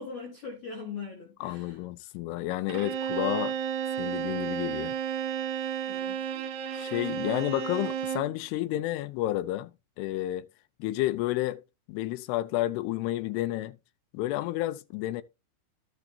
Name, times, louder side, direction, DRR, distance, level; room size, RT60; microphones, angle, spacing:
voice 1, 0.0-1.8 5.9-6.8, left 5 dB, 60° left, 2.1 m, -41 dB
voice 2, 1.4-3.6 4.0-5.0 6.7-9.7 10.0-10.5 10.8-11.6 11.9-13.8 14.1-15.2, left 16 dB, 85° left, 2.3 m, -30 dB
Bowed string instrument, 2.7-8.4, right 8 dB, 90° right, 2.3 m, -32 dB
12.0 x 6.4 x 2.7 m
omnidirectional pair, 5.3 m